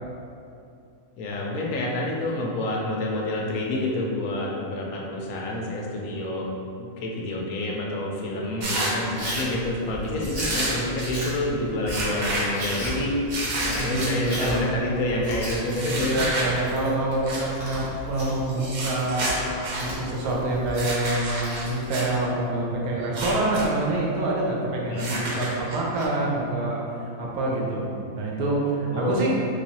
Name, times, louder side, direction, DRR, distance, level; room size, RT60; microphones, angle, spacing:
voice 1, 1.2-6.5 6.8-13.2 13.7-16.5 24.9-25.1 28.9-29.3, left 1 dB, 80° left, -2 dB, 1.1 m, -28 dB
sound 1, 8.6-9.3 10.2-11.1 11.9-12.8 13.3-14.1 15.7-16.5 17.2-17.4 18.5-19.8 20.7-22.1 23.0-23.7 23.9-24.0 25.0-26.0, right 2 dB, 70° right, 0.4 m, -30 dB
Chewing mastication, 9.2-22.2, equal, 40° right, 0.8 m, -36 dB
voice 2, 13.8-14.8 16.0-19.4 19.8-27.9 28.2-29.3, right 2 dB, 85° right, -3 dB, 1.1 m, -26 dB
3.1 x 3.0 x 2.8 m, 2.6 s
omnidirectional pair, 1.5 m